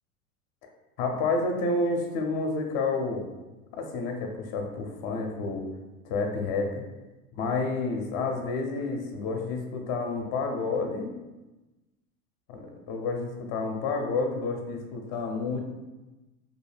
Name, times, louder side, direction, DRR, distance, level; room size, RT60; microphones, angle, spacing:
voice 1, 1.0-3.3 3.7-5.7 6.0-6.8 7.3-11.1 12.5-15.6, left 3 dB, 40° left, 3 dB, 0.5 m, -29 dB
2.4 x 2.1 x 3.2 m, 1.1 s
hypercardioid pair, 100°, 44 cm